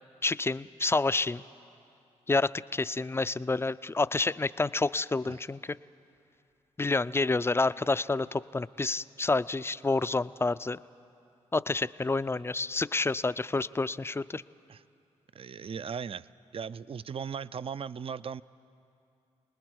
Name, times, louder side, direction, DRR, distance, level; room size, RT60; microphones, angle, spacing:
voice 1, 0.2-1.4 2.3-5.8 6.8-10.8 11.5-14.4, left 3 dB, 15° left, 15 dB, 0.4 m, -29 dB
voice 2, 15.3-16.3 16.5-18.4, right 6 dB, 40° right, 17 dB, 0.5 m, -37 dB
29.0 x 20.0 x 4.7 m, 2.6 s
supercardioid pair, 50°, 14 cm